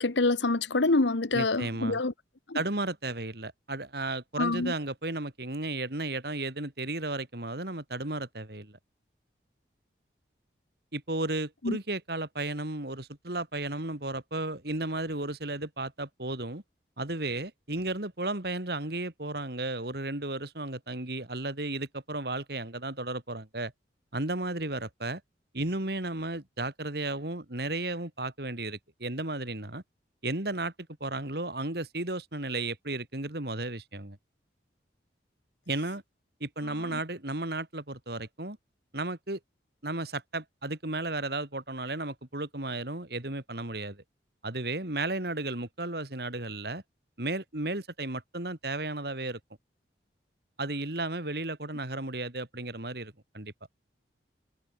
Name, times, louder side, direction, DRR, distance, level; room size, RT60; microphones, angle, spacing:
voice 1, 0.0-2.1 2.5-2.6 4.4-4.7 11.6-11.8, left 2 dB, 80° left, 1.2 m, -26 dB
voice 2, 1.3-2.0 2.5-8.8 10.9-16.6 17.0-23.7 24.1-25.2 25.5-29.8 30.2-30.7 31.0-34.2 35.7-36.0 36.4-38.6 38.9-39.4 39.8-44.0 44.4-46.8 47.2-49.4 50.6-53.5, right 2 dB, 60° right, 2.7 m, -34 dB
head